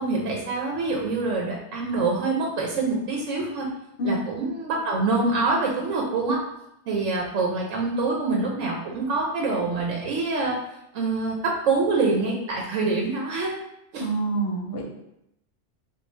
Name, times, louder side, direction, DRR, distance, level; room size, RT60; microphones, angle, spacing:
voice 1, 0.0-3.7 4.0-6.4 6.9-10.6 10.9-13.6 13.9-14.1, right 3 dB, 85° right, -2 dB, 1.0 m, -25 dB
voice 2, 14.0-14.8, right 2 dB, 60° left, -1 dB, 0.7 m, -26 dB
3.1 x 2.3 x 3.2 m, 0.82 s
omnidirectional pair, 1.3 m